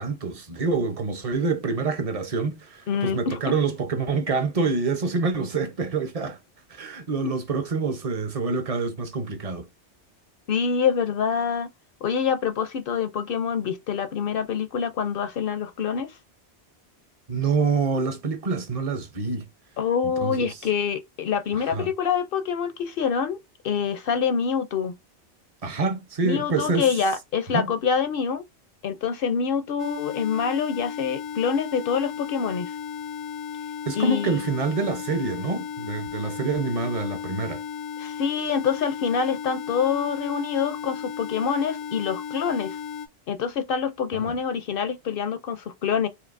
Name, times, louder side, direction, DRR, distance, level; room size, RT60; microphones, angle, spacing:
voice 1, 0.0-6.4 6.7-9.7 17.3-19.4 20.2-20.6 21.5-21.9 25.6-26.9 27.5-27.7 33.9-37.6 44.1-44.4, right 4 dB, 40° right, 0.7 m, -26 dB
voice 2, 2.9-3.5 7.2-7.3 10.5-11.7 12.0-16.1 19.8-23.4 23.6-25.0 26.2-28.4 28.8-32.7 34.0-34.4 38.0-42.8 43.3-46.1, left 6 dB, 60° left, 0.6 m, -26 dB
sound 1, 29.8-43.1, left 7 dB, 85° left, 0.9 m, -35 dB
4.5 x 2.7 x 2.5 m
omnidirectional pair, 1.2 m